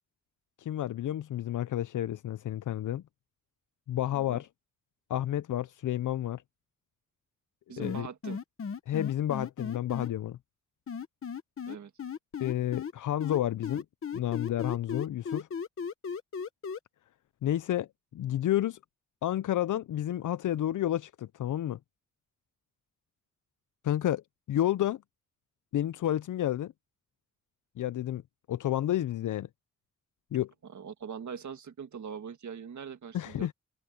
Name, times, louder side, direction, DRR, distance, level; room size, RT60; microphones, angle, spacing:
voice 1, 0.6-3.0 3.9-4.5 5.1-6.4 7.8-8.1 8.9-10.4 12.4-13.8 14.1-15.5 17.4-18.8 19.2-21.8 23.8-24.2 24.5-25.0 25.7-26.7 27.8-28.2 28.5-29.5 30.3-30.5 33.1-33.5, left 12 dB, 80° left, 0.5 m, -30 dB
voice 2, 7.7-8.4 11.7-11.9 30.6-33.5, right 7 dB, 70° right, 1.8 m, -42 dB
sound 1, 7.8-10.1 10.9-12.9 13.2-16.8, left 6 dB, 45° left, 1.0 m, -36 dB
wide cardioid pair, 175°, 30 cm